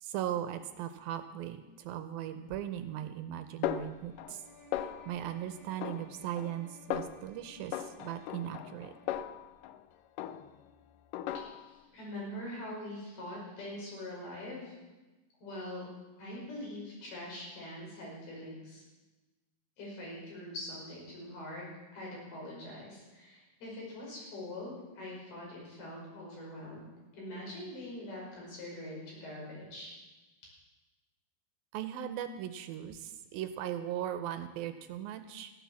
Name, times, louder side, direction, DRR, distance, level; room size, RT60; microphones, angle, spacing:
voice 1, 0.0-4.4 5.1-8.9 31.7-35.5, right 11 dB, 80° right, 10 dB, 2.4 m, -38 dB
Snare drum, 3.6-4.5 4.7-5.3 5.8-6.6 6.9-7.3 7.7-9.8 10.2-10.7 11.1-11.8, left 11 dB, 90° left, 1.8 m, -38 dB
sound 1, 4.0-9.4, left 1 dB, 25° right, 1.3 m, -58 dB
voice 2, 11.3-14.7 15.4-15.8 16.2-18.8 19.8-26.9 27.1-29.9, left 1 dB, 75° left, -4 dB, 7.3 m, -43 dB
14.5 x 11.5 x 7.1 m, 1.2 s
omnidirectional pair, 4.5 m